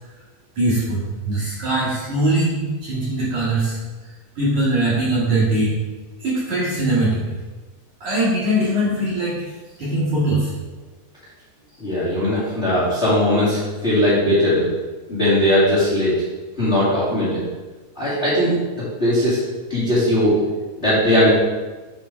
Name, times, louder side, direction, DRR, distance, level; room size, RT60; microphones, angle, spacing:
voice 1, 0.6-3.8 4.4-5.8 6.2-7.2 8.0-9.4 9.8-10.5, right 1 dB, 45° right, -9 dB, 2.7 m, -21 dB
voice 2, 11.8-14.6 15.1-16.1 16.6-17.4 17.9-19.4 19.7-20.4 20.8-21.3, left 1 dB, 25° left, -10 dB, 1.3 m, -19 dB
8.3 x 4.5 x 4.6 m, 1.2 s
omnidirectional pair, 5.3 m